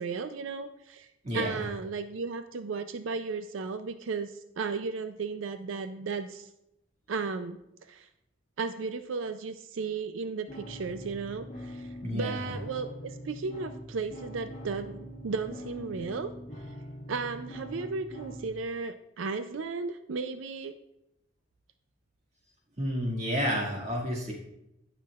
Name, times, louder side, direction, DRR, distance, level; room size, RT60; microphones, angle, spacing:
voice 1, 0.0-1.1 1.3-6.5 7.1-8.1 8.6-16.3 17.1-20.8, right 4 dB, 85° right, 9 dB, 0.5 m, -35 dB
voice 2, 1.2-1.6 12.0-12.5 22.8-24.3, equal, 35° right, -2 dB, 2.1 m, -31 dB
sound 1, 10.5-18.5, equal, 35° left, 1.3 m, -43 dB
17.0 x 5.9 x 2.4 m, 0.85 s
head